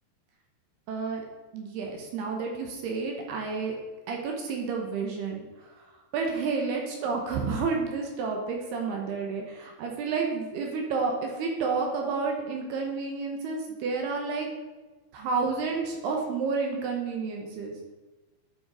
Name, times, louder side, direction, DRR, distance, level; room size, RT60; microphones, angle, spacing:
voice 1, 0.9-1.2 1.5-3.7 4.1-5.9 6.1-14.5 15.1-17.8, right 4 dB, 75° right, 1 dB, 2.9 m, -30 dB
11.0 x 5.2 x 4.8 m, 1.2 s
omnidirectional pair, 5.1 m